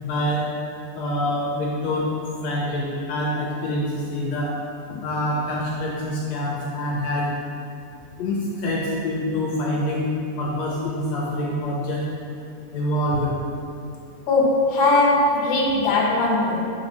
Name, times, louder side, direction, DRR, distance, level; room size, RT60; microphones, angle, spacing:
voice 1, 0.0-0.5 1.0-2.1 2.4-4.5 5.0-7.3 8.2-10.1 10.4-12.0 12.7-13.3, left 1 dB, 70° left, -4 dB, 1.8 m, -25 dB
voice 2, 14.3-16.6, left 2 dB, 55° left, -3 dB, 1.5 m, -19 dB
6.5 x 4.0 x 5.3 m, 2.5 s
omnidirectional pair, 3.5 m